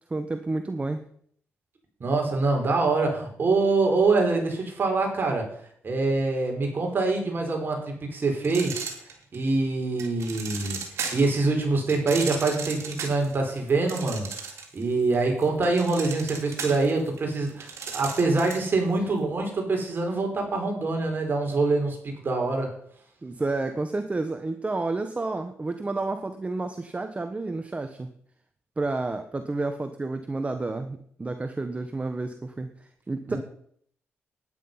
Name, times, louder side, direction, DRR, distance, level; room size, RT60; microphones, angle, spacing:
voice 1, 0.1-1.0 23.2-28.1 28.8-33.4, right 3 dB, 25° right, 8 dB, 1.2 m, -30 dB
voice 2, 2.0-5.5 5.8-8.9 9.3-10.8 11.1-22.7 33.3-33.4, right 3 dB, 45° right, 2 dB, 4.9 m, -25 dB
sound 1, 8.4-9.5 10.0-11.4 11.9-14.8 15.1-18.7, right 5 dB, 75° right, 3.0 m, -35 dB
12.5 x 10.0 x 5.6 m, 0.62 s
cardioid pair, 75°, 5 cm